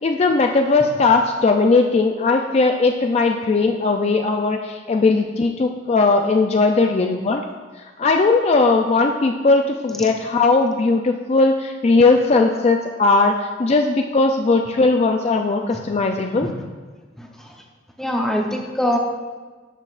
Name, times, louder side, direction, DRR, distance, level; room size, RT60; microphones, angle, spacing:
voice 1, 0.0-7.4 8.0-16.5, left 3 dB, 35° left, 4 dB, 0.3 m, -18 dB
voice 2, 18.0-19.0, equal, ahead, 0 dB, 0.7 m, -23 dB
12.0 x 6.2 x 2.4 m, 1.4 s
head